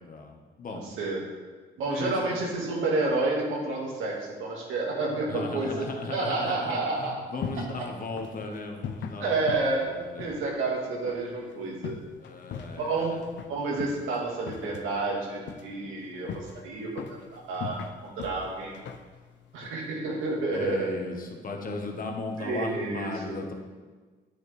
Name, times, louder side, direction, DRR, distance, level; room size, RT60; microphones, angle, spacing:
voice 1, 0.0-0.8 1.8-2.4 5.2-9.6 9.8-10.4 12.2-13.2 20.5-23.5, left 3 dB, 45° left, 3 dB, 1.5 m, -36 dB
voice 2, 0.7-1.2 1.8-7.2 9.2-12.0 12.7-13.2 13.5-17.8 18.2-18.8 19.5-20.9 22.4-23.4, right 3 dB, 90° right, -2 dB, 2.1 m, -30 dB
sound 1, 7.0-20.4, left 6 dB, 65° left, 0.7 m, -42 dB
9.7 x 8.7 x 3.5 m, 1.4 s
cardioid pair, 90°, 20 cm